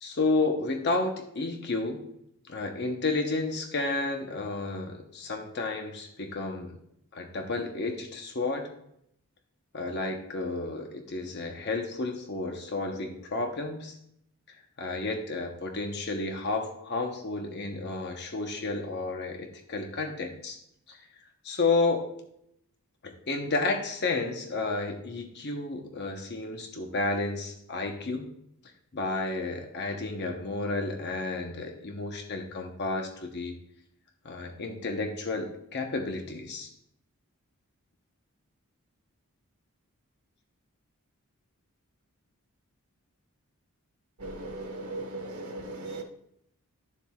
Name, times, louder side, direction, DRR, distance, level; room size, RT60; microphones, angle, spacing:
voice 1, 0.0-2.1 2.5-6.8 7.1-8.7 9.7-14.0 14.5-20.6 20.9-21.0 21.4-22.1 23.0-28.3 28.9-33.5 34.2-36.7, left 3 dB, 50° left, 4 dB, 0.9 m, -31 dB
voice 2, 44.2-46.0, right 2 dB, 80° right, 3 dB, 1.6 m, -37 dB
11.5 x 7.2 x 2.3 m, 0.74 s
head